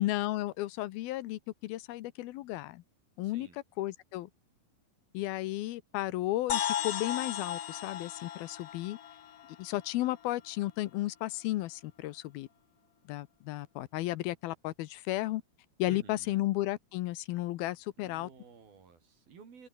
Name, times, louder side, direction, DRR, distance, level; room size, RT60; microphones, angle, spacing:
voice 1, 0.0-2.8 3.2-3.5 3.8-4.3 5.1-9.0 9.6-12.5 13.1-15.4 15.8-18.3, left 16 dB, 80° left, 2.7 m, -33 dB
voice 2, 3.2-3.6 15.9-16.4 18.0-19.7, right 6 dB, 70° right, 6.6 m, -53 dB
sound 1, 6.5-10.3, left 10 dB, 55° left, 1.8 m, -36 dB
open air
omnidirectional pair, 4.4 m